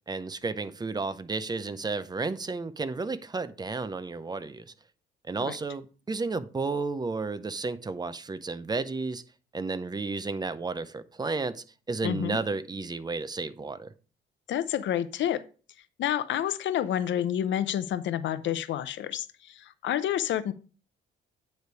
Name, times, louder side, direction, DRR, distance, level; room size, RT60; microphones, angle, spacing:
voice 1, 0.1-4.7 5.2-9.2 9.5-13.9, right 3 dB, 20° right, 0.5 m, -32 dB
voice 2, 12.0-12.4 14.5-15.4 16.0-20.5, left 10 dB, 70° left, 0.6 m, -29 dB
9.4 x 3.3 x 4.5 m
cardioid pair, 90°, 20 cm